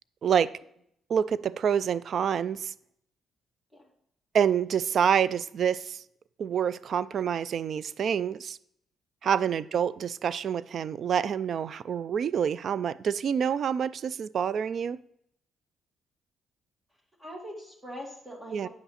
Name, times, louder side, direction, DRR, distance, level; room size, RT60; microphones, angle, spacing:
voice 1, 1.1-2.7 4.3-6.0 6.4-8.6 9.2-15.0 18.5-18.7, right 8 dB, 60° right, 0.3 m, -27 dB
voice 2, 17.2-18.7, equal, 15° right, 2.1 m, -42 dB
9.2 x 5.6 x 4.2 m
cardioid pair, 90°, 0 cm